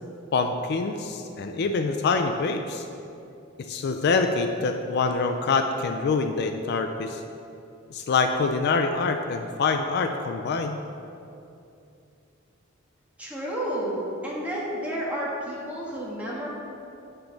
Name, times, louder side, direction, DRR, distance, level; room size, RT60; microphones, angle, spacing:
voice 1, 0.3-2.9 3.6-7.2 7.9-10.8, left 4 dB, 55° left, 6 dB, 0.4 m, -25 dB
voice 2, 13.2-16.5, equal, 5° right, -6 dB, 1.5 m, -31 dB
7.1 x 6.7 x 3.9 m, 2.7 s
head